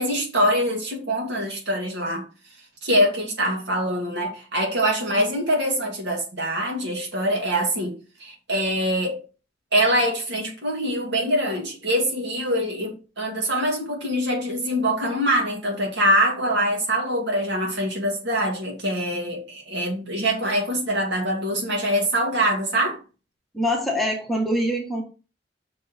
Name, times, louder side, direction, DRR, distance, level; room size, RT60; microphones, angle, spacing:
voice 1, 0.0-2.3 2.8-9.2 9.7-23.0, equal, 70° right, 2.5 m, -24 dB
voice 2, 23.5-25.0, equal, ahead, 1.4 m, -24 dB
6.0 x 4.4 x 4.4 m
head